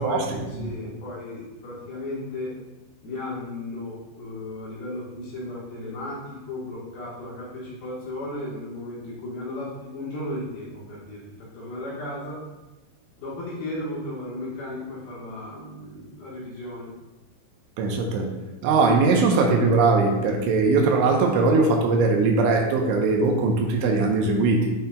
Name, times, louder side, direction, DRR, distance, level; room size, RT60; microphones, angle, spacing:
voice 1, 0.0-2.5 3.0-12.4 13.2-16.9, left 1 dB, 65° left, -7 dB, 2.5 m, -35 dB
voice 2, 17.8-18.3 18.6-24.7, right 3 dB, 80° right, 1 dB, 3.0 m, -20 dB
9.1 x 5.5 x 2.2 m, 1.1 s
omnidirectional pair, 5.8 m